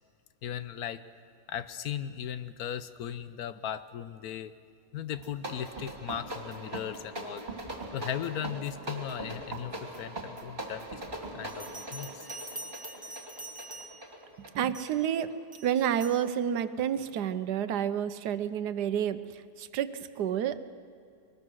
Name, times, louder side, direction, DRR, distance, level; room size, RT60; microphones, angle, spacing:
voice 1, 0.4-1.0 1.5-4.5 4.9-7.5 7.9-9.7 10.0-11.0 11.3-12.3, left 9 dB, 70° left, 12 dB, 1.2 m, -37 dB
sound 1, 5.1-15.4, right 1 dB, 30° right, 2.4 m, -41 dB
Bell, 11.5-14.2 14.7-15.0 15.5-16.2, right 2 dB, 5° right, 1.1 m, -44 dB
voice 2, 14.4-15.3 15.6-20.6, right 9 dB, 80° right, 12 dB, 1.4 m, -30 dB
23.0 x 20.5 x 6.2 m, 2.4 s
omnidirectional pair, 1.7 m